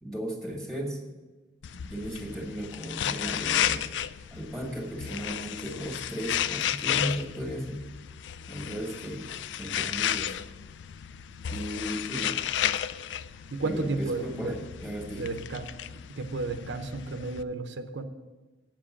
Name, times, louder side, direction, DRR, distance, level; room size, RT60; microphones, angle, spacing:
voice 1, 0.0-1.0 1.7-3.9 4.3-7.9 8.5-9.3 9.6-10.4 11.5-12.4 13.6-15.3, equal, 5° left, 1 dB, 1.8 m, -36 dB
sound 1, 1.6-17.4, left 10 dB, 80° left, 0.4 m, -33 dB
voice 2, 13.5-14.6 15.2-15.7 16.2-18.0, right 3 dB, 85° right, 7 dB, 0.8 m, -32 dB
9.0 x 7.6 x 7.2 m, 1.2 s
head